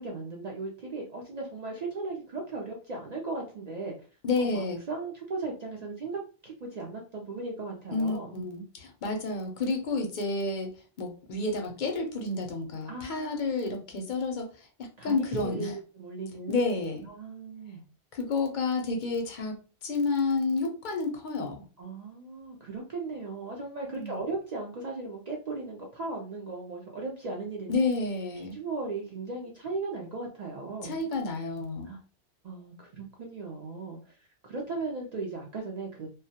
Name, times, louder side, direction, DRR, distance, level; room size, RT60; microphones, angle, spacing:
voice 1, 0.0-3.9 4.4-8.4 12.9-13.8 15.0-16.7 17.1-17.8 21.8-27.8 28.4-31.0 31.9-32.0 32.4-34.2 34.5-36.1, right 3 dB, 55° right, -1 dB, 0.4 m, -37 dB
voice 2, 4.2-4.8 7.9-15.7 16.5-17.1 18.1-21.6 23.9-24.2 27.7-28.6 30.8-32.0, left 3 dB, 55° left, 3 dB, 0.6 m, -30 dB
2.2 x 2.1 x 2.7 m, 0.36 s
omnidirectional pair, 1.2 m